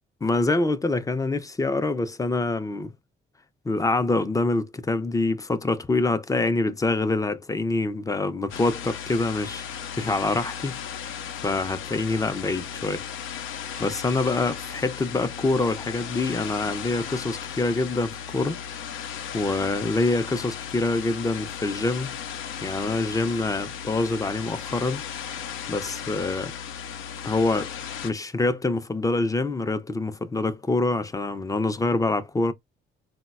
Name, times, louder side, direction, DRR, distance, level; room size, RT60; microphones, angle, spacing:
voice 1, 0.2-2.9 3.6-10.8 11.4-13.0 13.8-18.6 19.3-22.2 22.6-25.0 25.7-26.5 27.2-27.7 28.0-32.5, left 2 dB, 15° left, 0.4 m, -25 dB
sound 1, 8.5-28.1, left 8 dB, 85° left, 0.5 m, -36 dB
3.8 x 2.1 x 2.3 m
cardioid pair, 90°, 20 cm